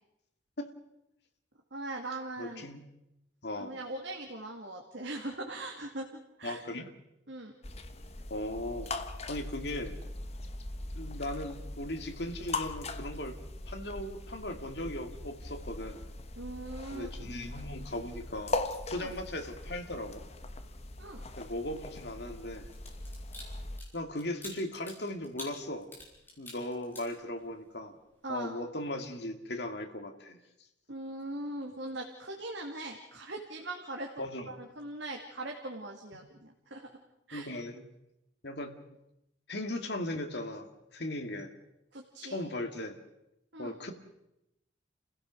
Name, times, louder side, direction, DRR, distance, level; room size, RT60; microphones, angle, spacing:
voice 1, 1.7-2.7 3.6-6.1 6.4-6.6 7.3-7.5 16.4-17.3 18.9-19.1 21.0-21.2 28.2-28.6 30.9-34.1 34.5-36.9 37.3-37.5 41.9-42.4 43.5-43.8, right 2 dB, 70° right, 1 dB, 2.3 m, -40 dB
voice 2, 2.4-2.8 3.4-3.8 6.4-6.9 8.3-8.9 9.3-10.0 11.0-13.4 13.7-16.0 16.9-18.6 18.9-20.2 21.4-22.7 23.9-25.9 26.4-27.9 28.3-30.4 34.2-34.5 36.1-36.2 37.3-37.8 38.4-38.9 39.5-41.5 42.2-43.0 43.6-43.9, left 1 dB, 60° left, 5 dB, 2.3 m, -38 dB
sound 1, 7.6-23.8, left 2 dB, 35° left, 1.2 m, -40 dB
sound 2, 22.7-27.7 28.1-28.3, left 1 dB, 10° left, 5.5 m, -48 dB
29.5 x 16.0 x 6.3 m, 0.86 s
head